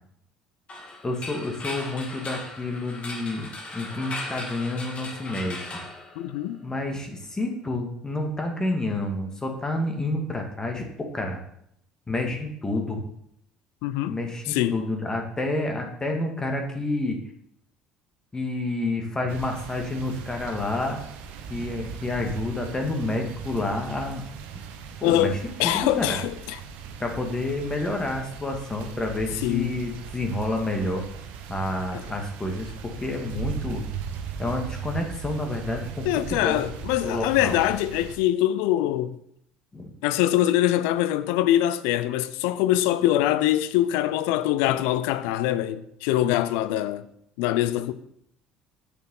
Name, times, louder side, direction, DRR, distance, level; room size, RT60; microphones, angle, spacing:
sound 1, 0.7-6.7, left 2 dB, 40° left, 2.7 m, -38 dB
voice 1, 1.0-5.8 6.6-10.9 11.1-11.4 12.1-13.0 14.1-17.2 18.3-21.0 21.5-24.2 25.0-25.3 25.6-26.2 27.0-31.0 31.5-33.8 34.4-37.6 39.7-39.9, left 2 dB, 20° left, 2.1 m, -29 dB
voice 2, 6.2-6.6 13.8-14.2 14.5-14.8 25.0-26.6 29.4-29.8 31.9-32.0 36.0-39.2 40.0-47.0 47.4-47.9, left 13 dB, 70° left, 0.6 m, -23 dB
sound 2, 19.3-38.2, right 7 dB, 65° right, 1.0 m, -38 dB
8.4 x 6.9 x 3.9 m
hypercardioid pair, 60°, 3 cm